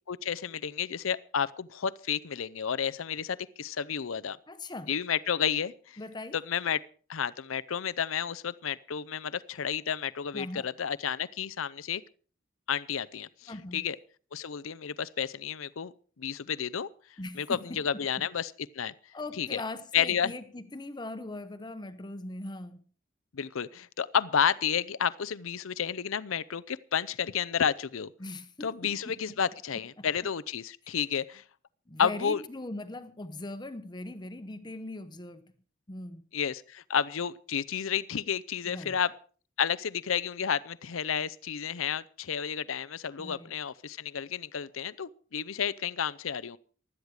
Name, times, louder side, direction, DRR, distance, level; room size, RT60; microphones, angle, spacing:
voice 1, 0.1-4.4 4.9-6.0 6.3-6.8 7.1-12.0 12.7-14.0 14.3-16.9 17.3-18.9 19.4-19.6 19.9-20.3 23.3-28.1 28.6-31.4 32.0-32.4 36.3-39.1 39.6-46.6, left 7 dB, 80° left, 0.6 m, -31 dB
voice 2, 4.5-4.9 6.0-6.4 10.3-10.6 13.5-13.9 17.2-18.3 19.1-22.8 28.2-29.4 29.7-30.1 30.8-31.0 31.9-35.5 35.9-36.2 38.6-39.0 43.2-43.5, left 2 dB, 20° left, 0.9 m, -40 dB
16.5 x 12.0 x 4.9 m
head